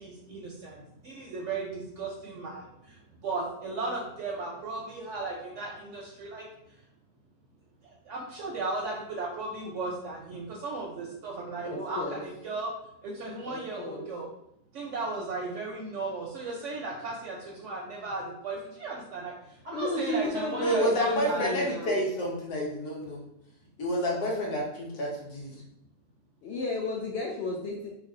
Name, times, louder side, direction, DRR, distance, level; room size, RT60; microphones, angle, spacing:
voice 1, 0.0-2.9 3.2-6.4 8.1-12.7 13.0-14.3 14.7-19.3 19.6-21.7, right 3 dB, 65° right, -2 dB, 0.7 m, -35 dB
voice 2, 11.6-12.2 13.5-14.1 19.7-22.0 26.4-27.9, left 2 dB, 85° left, -2 dB, 0.6 m, -33 dB
voice 3, 20.6-23.2 23.8-25.6, equal, 70° left, -3 dB, 1.4 m, -29 dB
3.2 x 2.2 x 3.7 m, 0.78 s
omnidirectional pair, 1.7 m